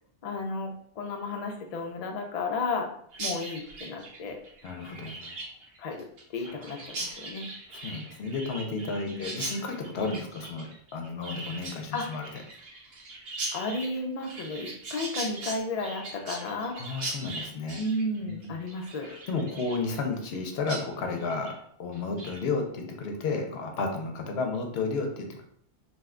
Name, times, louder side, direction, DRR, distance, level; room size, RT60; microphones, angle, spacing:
voice 1, 0.2-2.9 3.2-4.4 5.8-6.1 6.3-7.5 9.1-9.3 11.9-12.1 13.5-16.8 17.8-19.1, left 2 dB, 55° left, 2 dB, 0.4 m, -33 dB
Chirp tweet, 3.1-20.4 20.7-20.8 21.2-21.6 21.9-22.4, right 2 dB, 65° right, 0.9 m, -40 dB
voice 2, 4.6-5.3 6.6-6.7 7.7-12.3 16.8-17.8 18.2-18.5 19.1-21.5 21.8-25.4, left 4 dB, 70° left, 3 dB, 0.8 m, -32 dB
2.7 x 2.2 x 3.6 m, 0.66 s
omnidirectional pair, 1.1 m